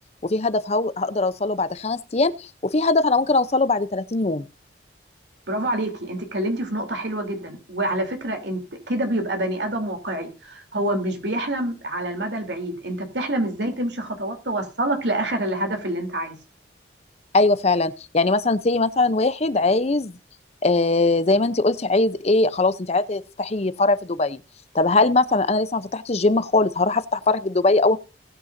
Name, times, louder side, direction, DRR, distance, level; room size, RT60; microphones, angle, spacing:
voice 1, 0.2-4.4 17.3-20.1 20.6-24.4 24.7-28.0, left 3 dB, 35° left, 0.6 m, -21 dB
voice 2, 5.5-16.3, right 1 dB, 65° right, 3.3 m, -27 dB
20.0 x 8.6 x 2.6 m
head